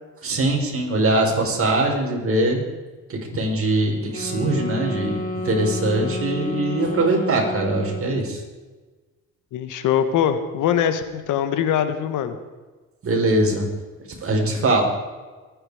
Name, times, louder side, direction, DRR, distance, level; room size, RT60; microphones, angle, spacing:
voice 1, 0.2-2.6 3.1-8.4 13.0-13.7 14.2-14.8, right 2 dB, 45° right, 1 dB, 5.1 m, -22 dB
sound 1, 4.1-8.3, left 1 dB, 25° left, 3.3 m, -30 dB
voice 2, 9.5-12.4, left 9 dB, 85° left, 10 dB, 1.5 m, -22 dB
24.5 x 10.0 x 5.0 m, 1.3 s
cardioid pair, 90°, 30 cm